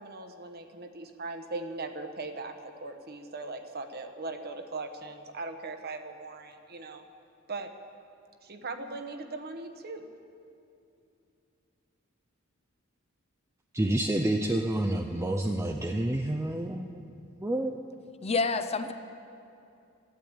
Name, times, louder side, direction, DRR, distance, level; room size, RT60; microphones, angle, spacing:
voice 1, 0.0-2.5 2.8-7.1 7.5-7.7 8.4-10.1, right 3 dB, 50° right, 6 dB, 1.1 m, -39 dB
voice 2, 13.7-17.1 17.4-17.7, right 1 dB, 15° right, 3 dB, 0.5 m, -28 dB
voice 3, 18.2-18.9, left 4 dB, 30° left, 9 dB, 0.6 m, -28 dB
14.0 x 11.5 x 8.8 m, 2.7 s
head